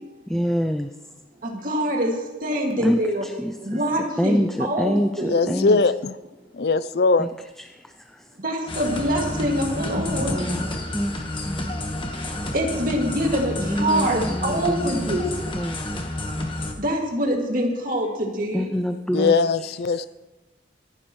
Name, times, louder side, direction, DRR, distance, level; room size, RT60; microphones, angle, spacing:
voice 1, 0.3-0.9 2.8-3.8 4.2-5.8 7.2-7.3 7.6-8.3 10.2-10.7 10.9-11.7 13.6-15.2 15.5-15.9 18.5-19.3, equal, 5° left, 6 dB, 0.4 m, -26 dB
voice 2, 1.6-2.1 2.4-3.3 3.7-5.6 8.4-10.7 12.5-15.3 16.8-18.6, equal, 45° right, 0 dB, 2.3 m, -25 dB
voice 3, 5.3-6.2 6.5-7.3 19.1-20.1, left 4 dB, 60° left, 15 dB, 0.5 m, -20 dB
sound 1, 8.7-16.7, left 1 dB, 30° left, 1.4 m, -30 dB
25.5 x 10.5 x 3.2 m, 1.1 s
head